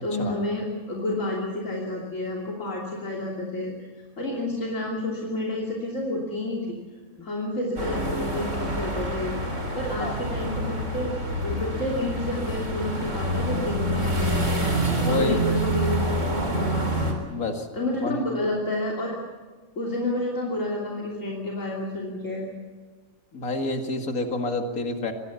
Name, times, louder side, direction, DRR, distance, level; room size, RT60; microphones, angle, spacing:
voice 1, 0.0-3.7 4.2-6.8 7.2-11.1 11.4-14.7 15.1-17.2 17.7-19.2 19.8-22.5, left 1 dB, 60° left, -3 dB, 3.4 m, -30 dB
sound 1, 7.8-17.1, right 1 dB, 60° right, 4.3 m, -27 dB
voice 2, 15.0-15.4 17.3-17.7 18.0-18.3 23.3-25.1, left 2 dB, 75° left, 4 dB, 2.7 m, -28 dB
25.5 x 21.5 x 7.0 m, 1.5 s
omnidirectional pair, 1.5 m